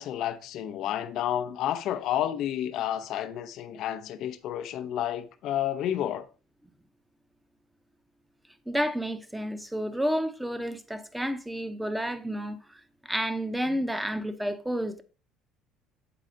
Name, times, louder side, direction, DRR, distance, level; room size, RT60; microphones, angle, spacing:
voice 1, 0.0-6.3 13.7-13.8, left 11 dB, 65° left, 0.6 m, -30 dB
voice 2, 8.7-15.0, equal, 5° right, 0.8 m, -31 dB
7.8 x 4.1 x 3.8 m
supercardioid pair, 75°, 0 cm